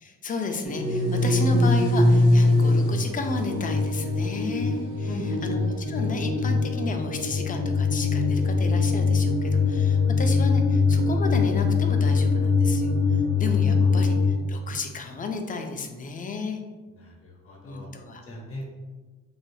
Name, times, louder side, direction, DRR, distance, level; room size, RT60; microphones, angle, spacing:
voice 1, 0.0-12.9 13.4-16.6 17.6-18.2, left 3 dB, 30° left, 5 dB, 0.4 m, -33 dB
sound 1, 0.6-14.3, left 3 dB, 80° right, 0.7 m, -22 dB
voice 2, 5.0-5.5 13.8-14.0 17.0-17.9 18.2-18.7, left 1 dB, 50° left, 0 dB, 0.8 m, -38 dB
3.3 x 2.1 x 2.6 m, 1.3 s
cardioid pair, 90°, 30 cm